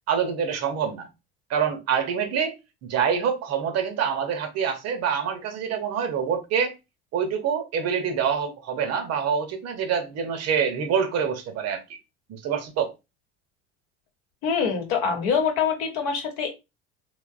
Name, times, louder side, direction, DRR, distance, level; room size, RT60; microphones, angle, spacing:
voice 1, 0.1-1.1 1.5-2.5 2.8-6.7 7.1-11.8 12.3-12.9, right 7 dB, 50° right, 0.7 m, -26 dB
voice 2, 14.4-16.5, left 6 dB, 70° left, 0.9 m, -24 dB
2.7 x 2.1 x 2.4 m
hypercardioid pair, 70°, 33 cm